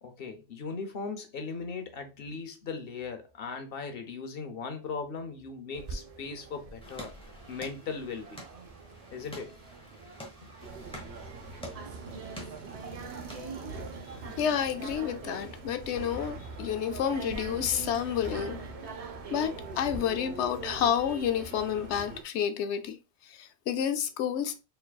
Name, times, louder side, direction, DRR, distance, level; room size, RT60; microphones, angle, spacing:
voice 1, 0.0-7.1 7.5-8.4 9.1-9.6 10.4-10.5, left 4 dB, 60° left, 0.9 m, -38 dB
sound 1, 5.7-20.0, right 4 dB, 45° right, 0.5 m, -45 dB
sound 2, 6.8-14.2, left 1 dB, 5° left, 0.9 m, -49 dB
sound 3, 10.6-22.2, right 3 dB, 70° right, 1.1 m, -43 dB
voice 2, 14.4-18.6 19.3-23.0 23.3-24.6, left 9 dB, 85° left, 0.9 m, -30 dB
4.5 x 3.3 x 2.3 m
omnidirectional pair, 1.1 m